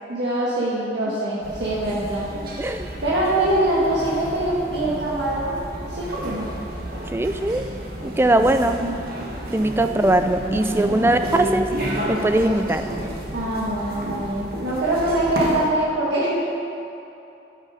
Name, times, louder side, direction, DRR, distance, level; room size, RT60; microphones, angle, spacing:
voice 1, 0.1-2.3 3.0-5.6 5.9-6.5 8.3-8.5 9.8-10.1 10.8-11.1 13.3-16.4, right 1 dB, 75° right, -7 dB, 1.5 m, -24 dB
sound 1, 1.4-15.7, right 1 dB, 50° right, 1.4 m, -31 dB
voice 2, 7.1-7.7 8.0-8.8 9.5-11.7 12.1-12.9, right 1 dB, 15° right, 8 dB, 0.4 m, -20 dB
13.0 x 6.5 x 5.0 m, 2.8 s
head